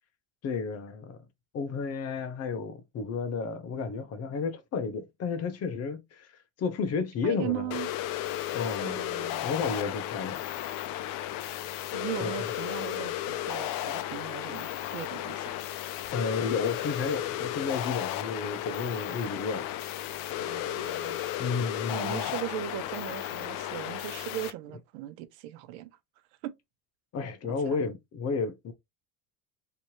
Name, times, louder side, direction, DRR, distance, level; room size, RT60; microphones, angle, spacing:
voice 1, 0.4-1.2 1.5-7.7 8.5-9.0 9.4-10.4 12.2-12.3 16.1-19.7 21.4-22.3 27.1-28.7, left 5 dB, 40° left, 0.9 m, -32 dB
voice 2, 7.2-7.9 8.8-9.5 11.9-15.6 20.4-21.2 21.9-25.9 26.4-26.5 27.7-27.8, right 13 dB, 85° right, 0.7 m, -38 dB
sound 1, 7.7-24.5, left 13 dB, 60° left, 0.6 m, -34 dB
3.3 x 2.9 x 2.9 m
cardioid pair, 125°, 38 cm